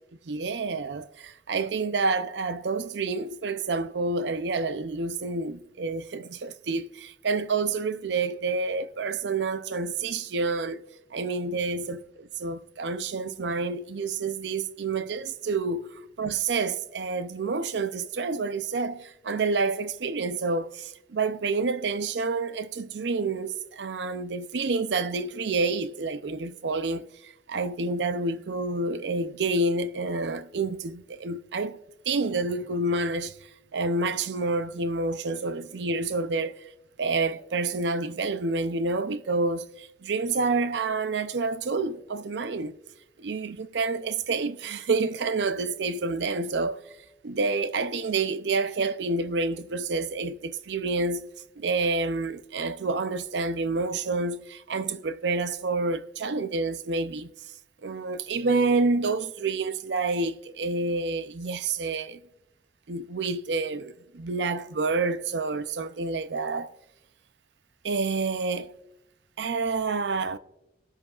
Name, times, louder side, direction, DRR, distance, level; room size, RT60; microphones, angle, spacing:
voice 1, 0.3-10.8 11.1-15.9 16.2-31.8 32.1-33.4 33.7-36.6 37.0-42.8 43.2-46.8 47.2-51.3 51.6-57.3 57.8-62.2 62.9-66.7 67.8-68.7 69.4-70.4, right 3 dB, 85° right, 0.6 m, -28 dB
20.0 x 7.7 x 2.4 m
head